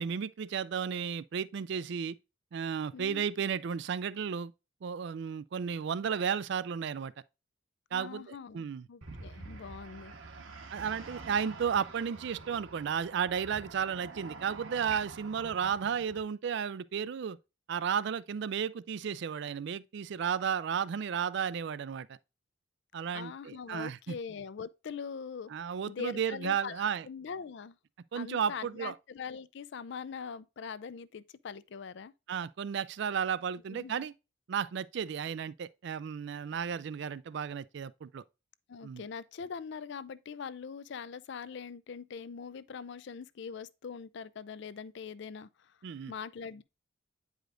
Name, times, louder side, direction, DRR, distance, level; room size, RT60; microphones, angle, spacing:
voice 1, 0.0-2.1 2.5-4.5 4.8-7.1 7.9-8.9 10.7-17.4 17.7-22.2 22.9-24.1 25.5-27.1 28.1-28.9 32.3-34.1 34.5-38.2 38.8-39.0 45.8-46.1, right 7 dB, 60° right, 0.3 m, -33 dB
voice 2, 2.9-3.2 7.9-10.1 23.1-25.5 25.9-27.8 28.1-32.1 33.7-34.1 38.7-45.7 46.1-46.6, left 6 dB, 60° left, 0.4 m, -42 dB
sound 1, 9.0-16.2, right 3 dB, 80° right, 1.1 m, -47 dB
9.0 x 5.0 x 2.5 m
head